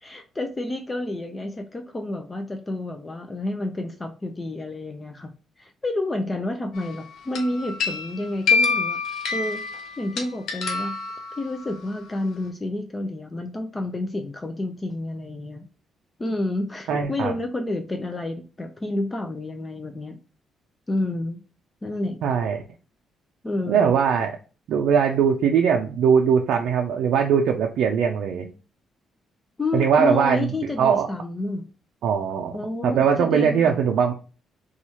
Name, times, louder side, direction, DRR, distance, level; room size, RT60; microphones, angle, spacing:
voice 1, 0.0-5.3 5.6-9.0 9.3-9.6 10.0-15.7 16.2-20.2 20.9-21.4 21.8-22.2 23.4-23.8 29.6-31.6 32.5-33.7, left 2 dB, 20° left, 5 dB, 0.4 m, -29 dB
sound 1, 6.7-7.0 7.4-11.8, left 4 dB, 75° left, 0.7 m, -26 dB
voice 2, 16.9-17.3 22.2-22.6 23.7-24.4 24.7-28.5 29.7-31.1 32.0-32.6 32.8-34.1, right 7 dB, 80° right, 3 dB, 0.4 m, -21 dB
3.0 x 2.3 x 4.2 m, 0.35 s
cardioid pair, 90°, 0 cm